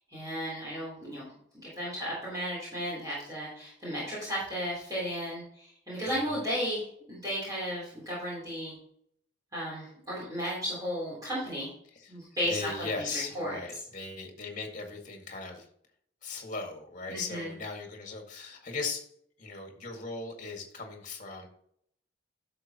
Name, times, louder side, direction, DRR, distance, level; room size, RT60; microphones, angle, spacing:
voice 1, 0.1-1.3 1.6-8.7 9.5-11.7 12.1-12.7 13.0-13.5 17.1-17.5, equal, 20° right, -8 dB, 3.7 m, -34 dB
voice 2, 6.0-6.4 11.9-12.2 12.4-15.7 16.2-19.1 19.4-21.5, left 3 dB, 40° left, 2 dB, 2.1 m, -38 dB
11.5 x 6.7 x 3.0 m, 0.66 s
head